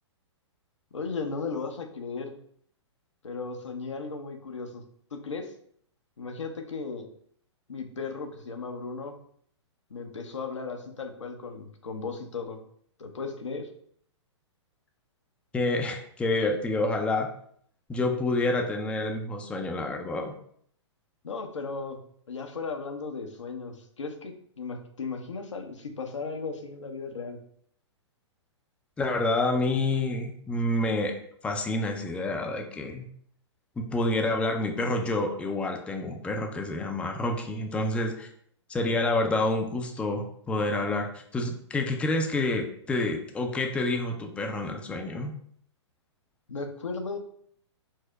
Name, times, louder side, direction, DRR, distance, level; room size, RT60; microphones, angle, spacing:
voice 1, 0.9-2.3 3.2-4.8 5.1-5.5 6.2-7.1 7.7-9.2 9.9-12.6 13.0-13.7 21.2-22.0 22.3-27.4 46.5-47.2, left 4 dB, 80° left, 4 dB, 0.8 m, -36 dB
voice 2, 15.5-17.3 17.9-20.3 29.0-31.1 31.4-33.0 33.8-38.3 38.7-45.3, left 2 dB, 5° left, 3 dB, 0.4 m, -28 dB
4.6 x 2.1 x 4.5 m, 0.64 s
figure-of-eight pair, 115°, 15 cm